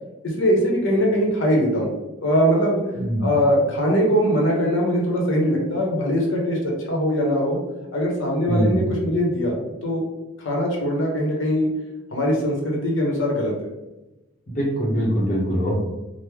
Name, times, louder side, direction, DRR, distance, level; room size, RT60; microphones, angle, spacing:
voice 1, 0.2-1.9 2.2-2.8 3.2-7.6 7.9-9.6 9.8-10.0 10.4-11.7 12.1-13.5, equal, 70° left, -1 dB, 0.8 m, -21 dB
voice 2, 2.9-3.3 8.5-8.8 14.5-15.7, equal, 40° left, -5 dB, 0.7 m, -22 dB
3.2 x 2.1 x 3.3 m, 1.0 s
head